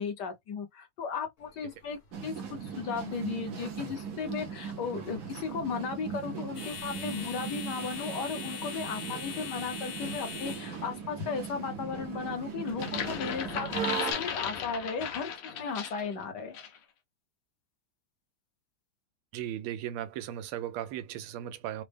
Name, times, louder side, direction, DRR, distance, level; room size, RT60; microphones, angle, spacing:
voice 1, 0.0-2.3 2.6-16.6, left 5 dB, 65° left, 1.2 m, -36 dB
sound 1, 1.4-12.7, left 7 dB, 45° left, 1.0 m, -45 dB
sound 2, 2.1-14.1, right 7 dB, 65° right, 0.8 m, -39 dB
sound 3, 12.7-16.1 16.5-16.8, left 7 dB, 90° left, 1.6 m, -35 dB
voice 2, 19.3-21.8, right 11 dB, 90° right, 1.4 m, -37 dB
4.1 x 2.0 x 3.3 m
omnidirectional pair, 2.3 m